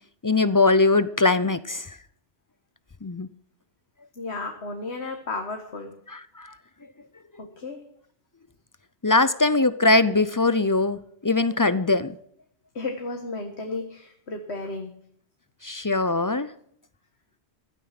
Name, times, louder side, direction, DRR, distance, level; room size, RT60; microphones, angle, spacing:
voice 1, 0.2-2.0 3.0-3.3 6.1-6.5 9.0-12.2 15.6-16.5, left 3 dB, 30° left, 15 dB, 0.4 m, -21 dB
voice 2, 4.2-5.9 7.4-7.8 12.7-14.9, left 3 dB, 70° left, 4 dB, 1.8 m, -33 dB
16.0 x 12.5 x 5.9 m, 0.66 s
omnidirectional pair, 1.1 m